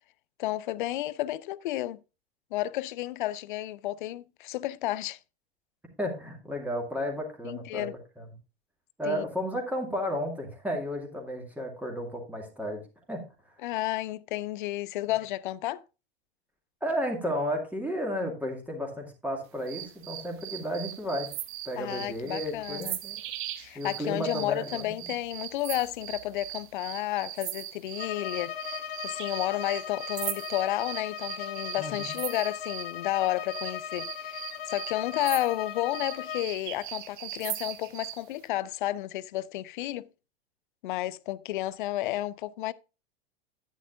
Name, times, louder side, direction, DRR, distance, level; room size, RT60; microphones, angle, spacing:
voice 1, 0.4-2.0 2.5-5.2 7.4-8.0 9.0-9.2 13.6-15.8 21.8-23.0 23.6-40.1 40.8-42.7, left 15 dB, 50° left, 0.5 m, -32 dB
voice 2, 6.0-7.9 8.2-8.3 9.0-12.8 13.1-13.2 16.8-21.3 21.7-23.2 23.7-25.1 31.8-32.1, equal, 5° right, 2.3 m, -33 dB
sound 1, 19.7-32.9 33.5-38.2, right 14 dB, 50° right, 1.0 m, -39 dB
Bowed string instrument, 27.9-36.5, left 8 dB, 65° left, 0.9 m, -38 dB
10.5 x 10.5 x 2.6 m
figure-of-eight pair, 90°, 32 cm